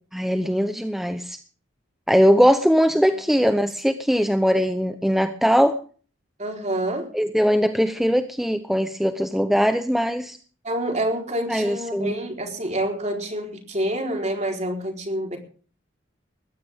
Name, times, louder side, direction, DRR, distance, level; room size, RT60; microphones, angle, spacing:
voice 1, 0.1-1.4 2.1-5.8 7.1-10.4 11.5-12.1, equal, ahead, 8 dB, 0.8 m, -20 dB
voice 2, 6.4-7.1 10.6-15.4, right 1 dB, 35° right, 2 dB, 4.2 m, -27 dB
20.5 x 15.5 x 3.7 m, 0.41 s
head